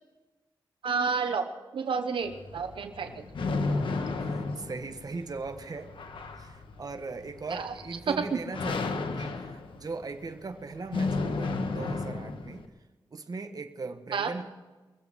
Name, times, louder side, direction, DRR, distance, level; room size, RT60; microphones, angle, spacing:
voice 1, 0.8-3.2 7.5-7.7 8.2-8.3 14.1-14.3, right 5 dB, 90° right, 7 dB, 0.9 m, -30 dB
sound 1, 2.2-12.7, left 3 dB, 90° left, 1.3 m, -34 dB
voice 2, 3.7-5.9 6.4-12.7 13.1-14.5, right 3 dB, 50° right, 7 dB, 1.3 m, -39 dB
22.5 x 7.9 x 6.3 m, 1.2 s
wide cardioid pair, 80°, 8 cm